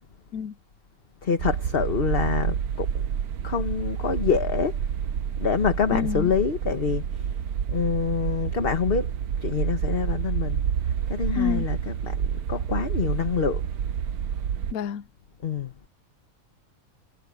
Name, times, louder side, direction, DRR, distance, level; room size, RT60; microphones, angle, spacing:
voice 1, 1.2-3.0 3.4-4.8 5.4-7.3 7.7-9.1 9.4-10.6 11.1-13.7 15.4-15.7, left 6 dB, 40° left, 1.4 m, -26 dB
sound 1, 1.4-14.7, right 8 dB, 90° right, 1.4 m, -28 dB
voice 2, 5.9-6.3 11.4-11.7 14.7-15.1, left 8 dB, 80° left, 1.2 m, -28 dB
omnidirectional pair, 1.5 m